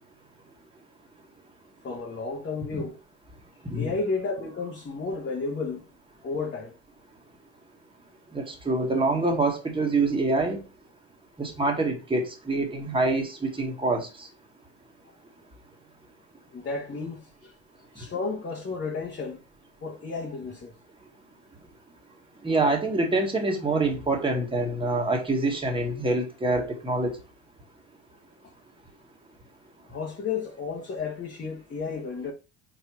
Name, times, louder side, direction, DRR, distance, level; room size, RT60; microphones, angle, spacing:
voice 1, 1.8-3.0 3.7-5.9 6.2-6.8 16.5-17.5 17.9-19.4 19.8-20.7 29.9-32.3, left 4 dB, 30° left, 1.5 m, -32 dB
voice 2, 8.3-10.6 11.4-14.3 22.4-27.1, right 2 dB, 15° right, 2.0 m, -26 dB
4.8 x 4.6 x 4.7 m
supercardioid pair, 80°, 37 cm